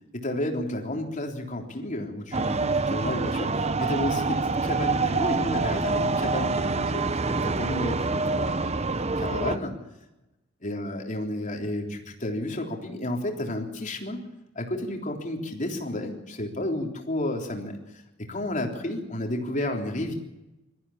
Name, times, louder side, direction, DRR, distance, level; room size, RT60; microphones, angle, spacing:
voice 1, 0.1-8.8 9.2-9.7 10.6-14.3 14.6-17.8 18.2-20.1, left 1 dB, 40° left, 2 dB, 3.6 m, -31 dB
sound 1, 2.3-9.6, right 3 dB, 35° right, 0.9 m, -26 dB
22.5 x 14.5 x 8.7 m, 0.96 s
head